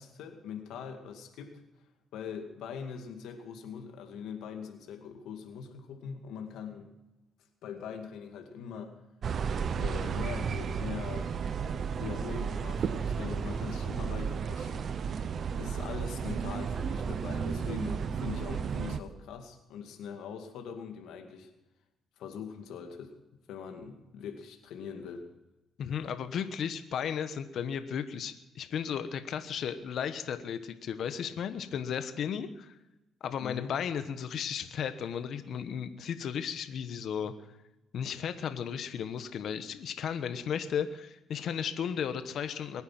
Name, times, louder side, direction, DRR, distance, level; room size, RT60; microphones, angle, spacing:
voice 1, 0.0-1.6 2.1-6.9 7.6-9.0 9.7-11.3 11.7-14.9 15.5-21.5 22.2-23.1 23.5-25.3 33.4-33.7, left 7 dB, 85° left, 4 dB, 2.2 m, -42 dB
sound 1, 9.2-19.0, right 6 dB, 55° right, 0.9 m, -33 dB
voice 2, 25.8-32.8 33.2-37.3 37.9-42.8, left 8 dB, 70° left, 10 dB, 1.2 m, -34 dB
22.0 x 9.6 x 6.0 m, 0.97 s
cardioid pair, 90°, 0 cm